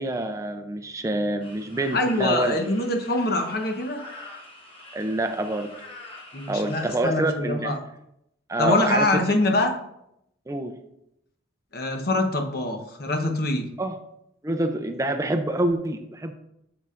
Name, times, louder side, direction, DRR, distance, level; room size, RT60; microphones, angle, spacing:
voice 1, 0.0-2.6 4.9-5.7 6.5-7.7 8.5-9.1 10.5-10.8 13.8-13.9 14.4-16.3, right 1 dB, 15° right, 6 dB, 0.4 m, -26 dB
sound 1, 1.4-7.0, left 2 dB, 30° left, 1.2 m, -45 dB
voice 2, 1.9-4.0 6.3-7.8 8.6-9.7 11.7-13.7, left 2 dB, 50° left, 4 dB, 0.9 m, -24 dB
8.6 x 6.9 x 2.5 m, 0.80 s
head